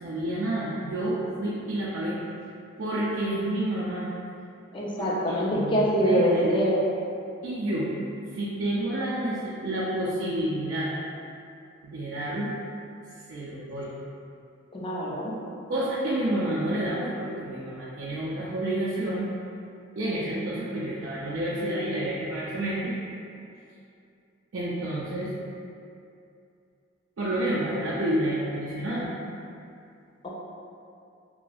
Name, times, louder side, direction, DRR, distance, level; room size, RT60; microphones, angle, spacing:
voice 1, 0.0-2.2 2.8-4.1 5.0-6.6 7.4-7.9 8.3-10.9 11.8-12.5 13.3-13.9 15.7-19.3 20.0-22.9 24.5-25.3 27.2-29.1, right 1 dB, 70° right, -9 dB, 0.4 m, -29 dB
voice 2, 4.7-6.8 14.7-15.3 30.2-30.3, equal, 25° left, -5 dB, 0.4 m, -24 dB
3.0 x 2.6 x 2.3 m, 2.5 s
head